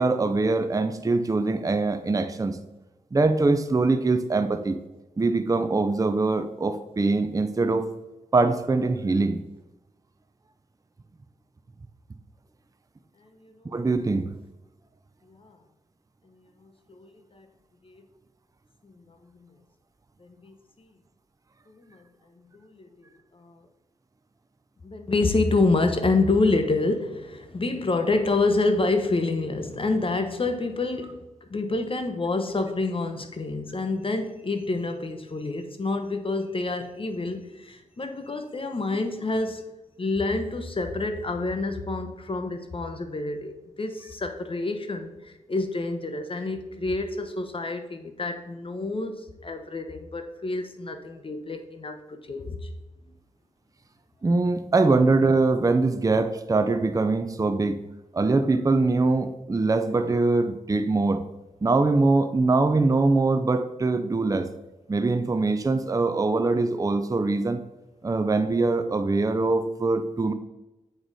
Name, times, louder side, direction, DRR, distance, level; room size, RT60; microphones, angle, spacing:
voice 1, 0.0-2.6 3.1-4.8 5.2-7.9 8.3-9.4 13.6-14.3 54.2-57.8 58.1-61.2 61.6-64.5 64.9-67.6 68.0-70.3, right 3 dB, 25° right, 9 dB, 0.5 m, -23 dB
voice 2, 16.6-17.5 17.8-18.0 18.8-19.2 19.4-19.5 20.2-20.5 21.7-22.0 22.5-22.9 23.3-23.6 24.8-39.7 40.0-52.7, left 3 dB, 40° left, 6 dB, 1.0 m, -28 dB
7.9 x 4.7 x 4.0 m, 1.0 s
cardioid pair, 70°, 14 cm